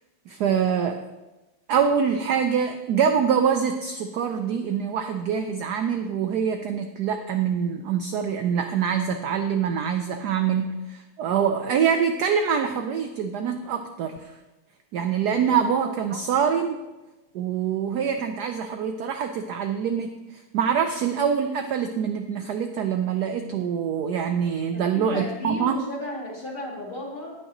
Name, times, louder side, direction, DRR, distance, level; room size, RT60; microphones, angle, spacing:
voice 1, 0.3-1.0 1.7-14.2 14.9-16.8 17.3-20.1 20.5-25.8, right 7 dB, 80° right, 7 dB, 0.9 m, -25 dB
voice 2, 15.0-15.6 24.7-27.3, left 1 dB, 25° left, -3 dB, 2.0 m, -35 dB
19.0 x 6.3 x 3.0 m, 1.1 s
omnidirectional pair, 2.3 m